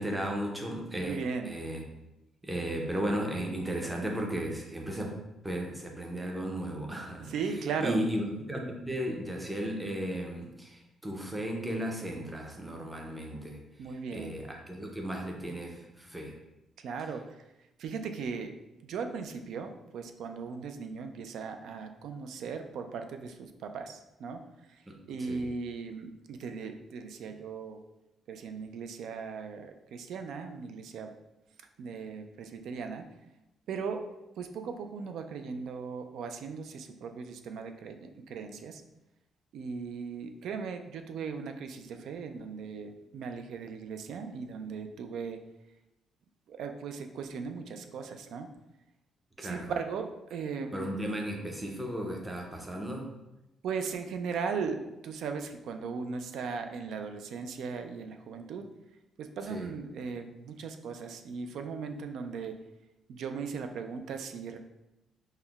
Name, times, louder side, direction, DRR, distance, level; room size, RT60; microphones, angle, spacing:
voice 1, 0.0-1.2 1.5-1.8 2.4-5.1 5.4-7.3 7.8-13.6 14.1-16.3 24.9-25.5 49.4-49.7 50.7-53.1 59.5-59.7, equal, 10° right, 1 dB, 0.5 m, -35 dB
voice 2, 1.0-1.5 7.2-8.0 13.8-14.4 16.8-17.4 17.8-18.6 18.8-27.8 28.3-31.1 31.8-33.1 33.7-38.8 39.5-45.4 46.5-48.5 49.4-50.8 53.6-58.7 59.2-62.6 63.1-64.6, right 5 dB, 70° right, 7 dB, 0.3 m, -38 dB
5.4 x 2.1 x 2.3 m, 0.95 s
cardioid pair, 135°, 0 cm